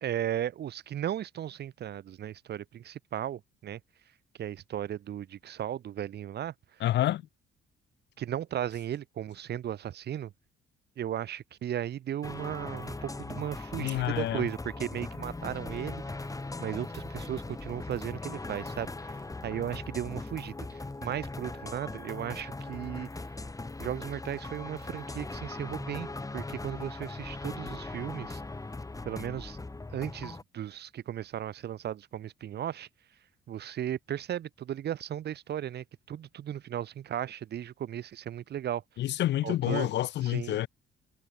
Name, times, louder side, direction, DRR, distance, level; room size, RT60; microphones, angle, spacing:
voice 1, 0.0-3.8 4.4-6.8 8.2-10.3 11.0-16.0 16.6-19.2 19.4-23.1 23.8-28.4 29.0-29.6 29.9-32.9 33.5-38.8 39.4-39.9 40.2-40.6, right 10 dB, 55° right, 0.8 m, -36 dB
voice 2, 6.8-7.2 13.8-14.4 39.0-40.7, left 13 dB, 65° left, 0.4 m, -28 dB
sound 1, 12.2-30.4, left 2 dB, 15° left, 2.2 m, -40 dB
cardioid pair, 90°, 20 cm